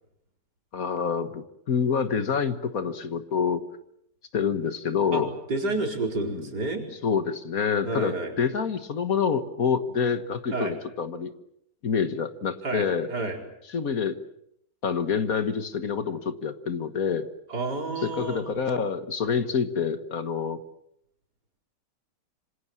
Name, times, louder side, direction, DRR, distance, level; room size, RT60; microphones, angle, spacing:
voice 1, 0.7-3.6 4.3-5.3 6.2-6.5 7.0-11.3 11.8-13.1 13.7-14.2 14.8-17.3 18.0-20.6, left 6 dB, 55° left, 10 dB, 1.8 m, -27 dB
voice 2, 5.5-6.9 7.8-8.3 10.5-10.8 12.6-13.4 17.5-18.4, right 3 dB, 70° right, 2 dB, 5.1 m, -30 dB
26.5 x 26.0 x 7.4 m, 0.76 s
omnidirectional pair, 1.8 m